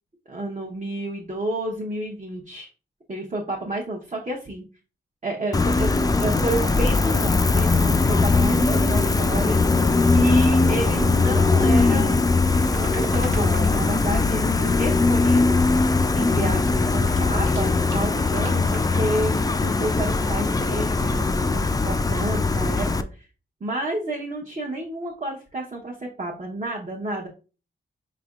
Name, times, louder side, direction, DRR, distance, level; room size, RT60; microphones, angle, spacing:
voice 1, 0.3-2.7 3.1-4.6 5.2-9.6 10.1-12.2 12.7-15.9 16.1-23.3 23.6-27.3, right 2 dB, 35° right, -1 dB, 0.9 m, -30 dB
Gull seagull, 5.5-23.0, left 3 dB, 20° left, 0.3 m, -20 dB
sound 1, 12.2-15.1 15.6-16.4 16.6-21.2 21.9-22.1, right 3 dB, 85° right, 1.6 m, -44 dB
5.0 x 3.3 x 2.4 m, 0.35 s
wide cardioid pair, 85°, 21 cm